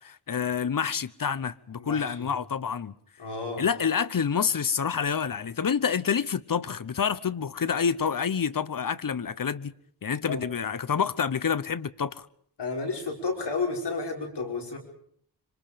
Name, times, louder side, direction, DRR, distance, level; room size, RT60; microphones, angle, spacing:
voice 1, 0.0-2.9 3.6-9.7 10.0-12.3, left 6 dB, 55° left, 1.0 m, -28 dB
voice 2, 1.8-2.3 3.2-3.6 10.2-10.4 12.6-14.8, left 4 dB, 85° left, 5.3 m, -31 dB
26.0 x 25.5 x 5.2 m
wide cardioid pair, 80°, 41 cm